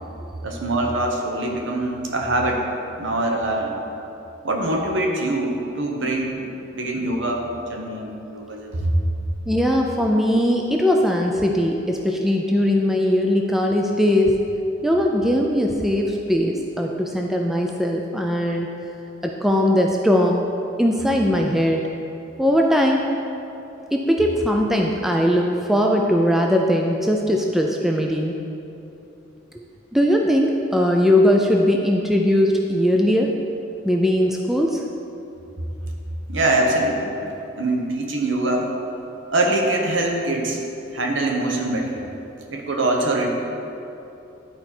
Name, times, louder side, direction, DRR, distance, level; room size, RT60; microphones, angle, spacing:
voice 1, 0.4-2.6 3.0-3.8 4.4-8.9 36.3-37.2 37.5-38.7 39.3-40.6 40.9-41.9 42.5-43.3, right 2 dB, 70° right, 1 dB, 1.0 m, -23 dB
voice 2, 9.5-14.4 14.8-18.7 19.2-20.5 20.8-21.9 22.4-23.0 23.9-28.4 29.5-29.6 29.9-33.3 33.8-34.8, equal, ahead, 0 dB, 0.3 m, -20 dB
10.5 x 4.5 x 4.3 m, 2.9 s
head